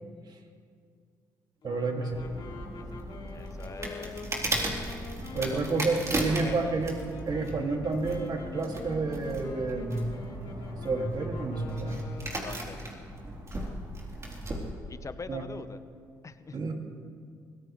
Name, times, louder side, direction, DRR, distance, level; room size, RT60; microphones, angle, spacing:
sound 1, 1.6-12.6, left 4 dB, 55° left, 2.6 m, -45 dB
voice 1, 1.6-2.2 5.3-7.0 7.3-10.2 10.8-12.1 15.3-15.4 16.5-16.7, right 3 dB, 50° right, 3 dB, 2.4 m, -30 dB
sound 2, 2.1-14.7, right 1 dB, 30° right, 3.8 m, -37 dB
voice 2, 2.7-4.2 5.4-5.8 6.4-6.8 12.4-13.1 13.5-13.8 14.9-15.8 16.2-16.6, left 4 dB, 35° left, 11 dB, 1.0 m, -44 dB
24.0 x 17.5 x 3.3 m, 2.1 s
hypercardioid pair, 55°, 9 cm